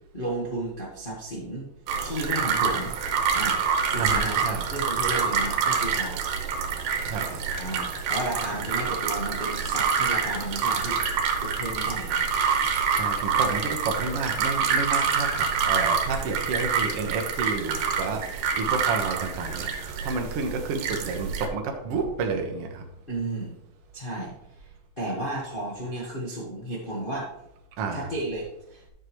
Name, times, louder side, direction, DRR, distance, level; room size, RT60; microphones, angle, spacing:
voice 1, 0.1-1.7 2.0-2.9 3.3-4.4 4.7-6.2 7.5-11.0 11.3-12.2 23.1-23.6 23.9-24.3 24.6-24.7 25.0-27.3 27.9-28.8, right 1 dB, 75° left, -5 dB, 0.4 m, -33 dB
sound 1, 1.9-21.5, right 6 dB, 85° right, 2.7 m, -26 dB
voice 2, 4.0-4.6 7.0-7.4 12.9-22.8 27.8-28.1, right 4 dB, 60° right, 2 dB, 1.6 m, -30 dB
11.5 x 6.5 x 3.1 m, 0.83 s
omnidirectional pair, 3.8 m